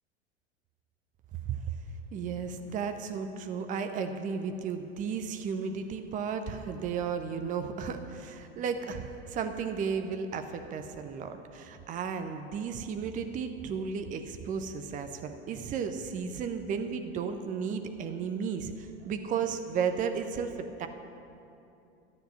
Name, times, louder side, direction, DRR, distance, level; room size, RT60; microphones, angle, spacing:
voice 1, 2.1-20.9, right 6 dB, 25° right, 7 dB, 0.7 m, -34 dB
11.5 x 7.4 x 6.8 m, 2.7 s
figure-of-eight pair, 85°, 32 cm